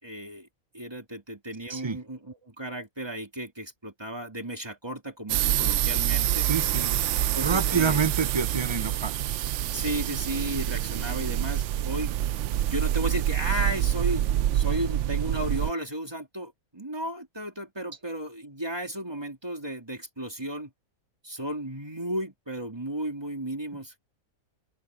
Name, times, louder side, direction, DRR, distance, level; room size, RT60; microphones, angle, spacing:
voice 1, 0.0-0.5 0.7-6.5 7.3-8.0 9.7-12.1 12.6-14.2 14.5-20.7 21.2-24.0, right 1 dB, 15° right, 3.2 m, -34 dB
sound 1, 5.3-15.7, right 12 dB, 65° right, 0.8 m, -27 dB
voice 2, 6.4-7.0 7.4-9.2, right 6 dB, 40° right, 0.4 m, -27 dB
open air
omnidirectional pair, 1.5 m